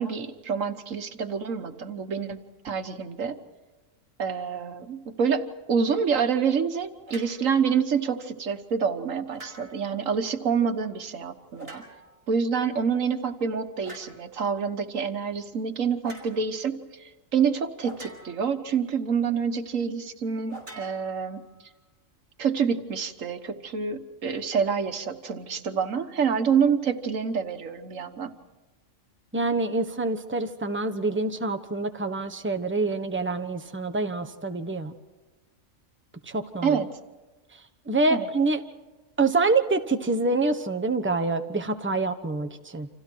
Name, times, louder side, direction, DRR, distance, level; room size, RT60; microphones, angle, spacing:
voice 1, 0.0-2.4 2.6-3.4 4.2-11.8 12.3-21.4 22.4-28.3 36.6-36.9 38.1-38.3, right 6 dB, 85° right, 9 dB, 1.7 m, -27 dB
sound 1, 7.1-7.4 9.3-9.9 11.5-12.2 13.8-14.2 16.0-16.3 17.8-18.6 20.5-21.6, right 1 dB, 40° right, 5.0 m, -45 dB
voice 2, 29.3-34.9 36.3-36.8 37.9-38.6 39.2-42.9, right 3 dB, 10° right, 7 dB, 1.1 m, -26 dB
29.5 x 26.5 x 4.6 m, 1.2 s
omnidirectional pair, 1.3 m